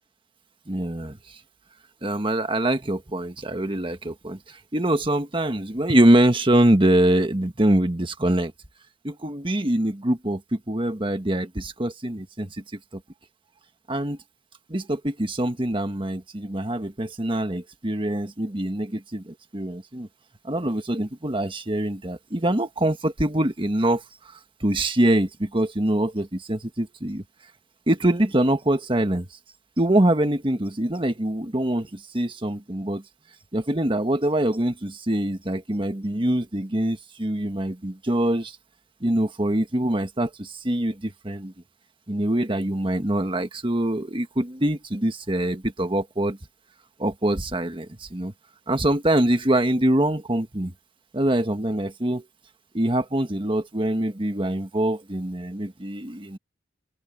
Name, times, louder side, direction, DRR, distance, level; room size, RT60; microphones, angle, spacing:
voice 1, 0.7-1.2 2.0-8.5 9.0-12.5 12.9-13.0 13.9-14.2 14.7-20.1 20.4-24.0 24.6-27.2 27.9-29.3 29.8-33.0 33.5-38.6 39.0-41.5 42.1-46.4 47.0-48.3 48.7-50.7 51.1-52.2 52.7-56.4, right 1 dB, 30° right, 1.5 m, -24 dB
open air
head